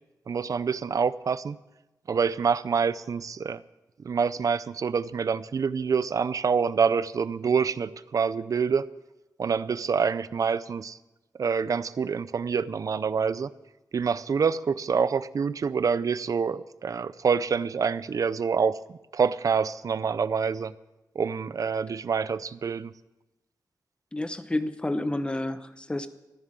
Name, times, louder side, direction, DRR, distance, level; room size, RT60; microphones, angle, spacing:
voice 1, 0.3-1.6 2.1-3.6 4.0-8.9 9.4-11.0 11.4-13.5 13.9-20.7 21.2-22.9, right 6 dB, 55° right, 16 dB, 0.5 m, -26 dB
voice 2, 24.1-26.1, left 1 dB, 15° left, 11 dB, 0.8 m, -30 dB
14.5 x 10.5 x 7.5 m, 1.0 s
wide cardioid pair, 155°, 7 cm